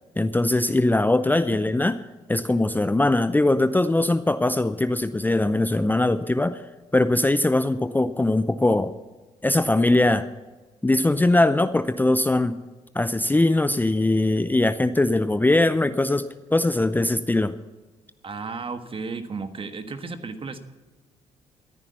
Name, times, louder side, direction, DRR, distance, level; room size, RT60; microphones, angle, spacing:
voice 1, 0.2-1.9 2.3-6.6 6.9-8.9 9.4-10.3 10.8-12.6 12.9-17.6, left 2 dB, 15° left, 12 dB, 0.6 m, -21 dB
voice 2, 18.2-20.6, right 4 dB, 40° right, 8 dB, 1.5 m, -33 dB
14.0 x 10.0 x 6.9 m, 1.2 s
supercardioid pair, 60°, 14 cm